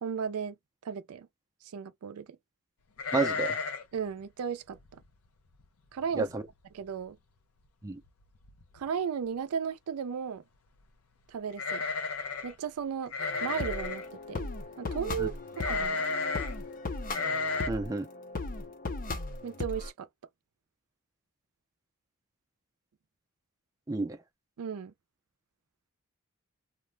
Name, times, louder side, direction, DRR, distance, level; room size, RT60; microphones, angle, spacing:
voice 1, 0.0-0.6 0.8-1.3 1.7-2.3 3.9-4.8 5.9-6.3 6.7-7.2 8.7-10.4 11.3-11.8 12.4-13.1 13.4-14.4 14.8-16.0 19.4-20.1 24.6-24.9, right 7 dB, 80° right, 0.4 m, -35 dB
sound 1, 3.0-4.0 4.2-4.3 4.8-5.1 5.6-5.7 6.0-6.5 6.8-6.9 8.0-8.1 8.4-8.9 11.5-12.5 13.1-14.1 15.6-16.5 17.1-17.7, left 4 dB, 85° left, 0.6 m, -33 dB
voice 2, 3.1-3.6 6.2-6.4 7.8-8.0 15.2-15.3 17.7-18.1 23.9-24.2, right 3 dB, 15° right, 0.4 m, -30 dB
sound 2, 13.2-19.9, left 3 dB, 40° left, 0.5 m, -37 dB
2.4 x 2.1 x 3.2 m
head